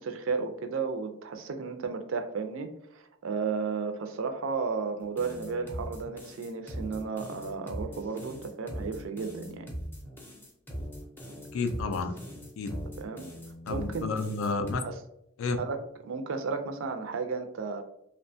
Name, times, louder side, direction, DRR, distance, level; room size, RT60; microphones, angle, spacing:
voice 1, 0.0-9.7 13.0-13.3 13.7-14.1 14.8-15.0 15.6-17.8, right 4 dB, 70° right, 7 dB, 0.4 m, -33 dB
sound 1, 5.0-14.7, equal, 10° left, 0.4 m, -41 dB
voice 2, 11.5-12.1 12.6-12.7 13.7-14.8 15.4-15.6, left 3 dB, 75° left, 7 dB, 0.4 m, -30 dB
2.7 x 2.1 x 2.6 m, 0.76 s
head